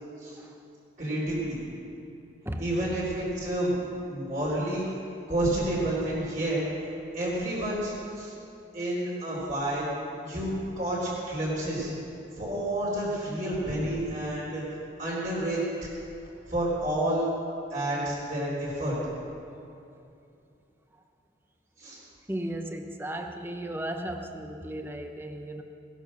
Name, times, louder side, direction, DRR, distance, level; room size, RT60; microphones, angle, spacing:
voice 1, 1.0-1.6 2.6-3.8 4.1-4.8 5.3-6.6 7.1-8.3 8.7-9.9 10.2-10.5 10.8-11.9 12.4-14.6 15.0-15.9 16.5-17.2 17.7-18.9 21.8-22.0, right 1 dB, 40° right, -7 dB, 3.8 m, -29 dB
voice 2, 22.3-25.6, right 1 dB, 10° right, 5 dB, 0.8 m, -35 dB
18.5 x 11.0 x 6.4 m, 2.7 s
head